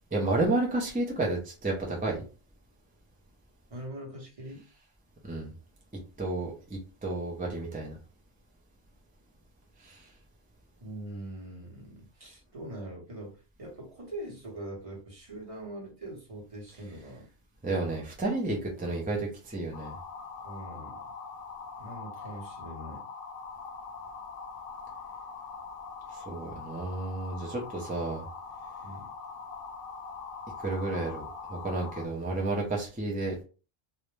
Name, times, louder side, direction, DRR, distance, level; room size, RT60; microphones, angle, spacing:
voice 1, 0.1-2.2 5.3-5.5 6.2-8.0 9.8-10.0 17.6-19.9 26.3-28.2 30.6-31.2 31.5-33.3, right 2 dB, 15° right, -2 dB, 0.3 m, -31 dB
voice 2, 3.7-4.7 10.8-17.3 20.4-21.0 21.8-23.0 28.8-29.1, right 1 dB, 35° right, -2 dB, 0.9 m, -42 dB
sound 1, 19.7-32.1, left 5 dB, 65° left, 0.7 m, -43 dB
2.4 x 2.1 x 3.1 m, 0.35 s
omnidirectional pair, 1.1 m